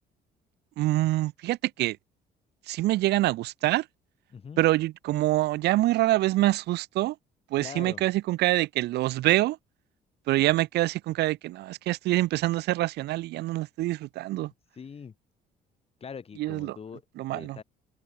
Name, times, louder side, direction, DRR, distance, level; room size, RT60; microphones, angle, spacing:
voice 1, 0.8-2.0 2.7-3.8 4.6-7.1 7.5-9.6 10.3-14.5 16.4-16.7 17.2-17.6, right 17 dB, 80° right, 1.6 m, -25 dB
voice 2, 4.3-4.6 7.6-8.0 14.7-15.1 16.0-17.0 17.3-17.6, left 6 dB, 35° left, 4.8 m, -42 dB
open air
cardioid pair, 110°, 17 cm